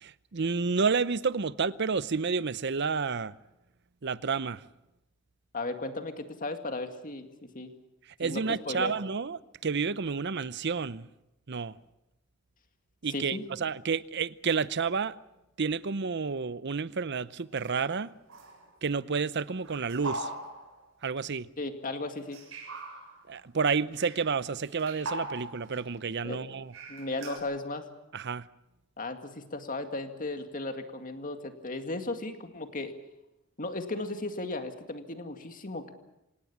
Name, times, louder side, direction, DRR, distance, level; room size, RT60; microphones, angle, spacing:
voice 1, 0.0-3.3 4.0-4.6 8.2-11.1 11.5-11.7 13.0-15.2 15.6-18.1 18.8-20.3 21.0-21.5 23.3-26.7 28.1-28.4, right 5 dB, 55° right, 0.7 m, -30 dB
voice 2, 5.5-7.7 8.2-8.9 13.1-13.5 21.6-22.4 26.2-26.5 26.9-27.9 29.0-32.9 33.6-35.9, left 2 dB, 40° left, 2.1 m, -36 dB
sound 1, 17.6-18.0 18.3-18.7 19.6-20.8 22.3-23.2 24.0-24.3 24.6-25.9 26.7-27.4, right 2 dB, 70° right, 7.1 m, -40 dB
26.0 x 18.5 x 7.3 m
head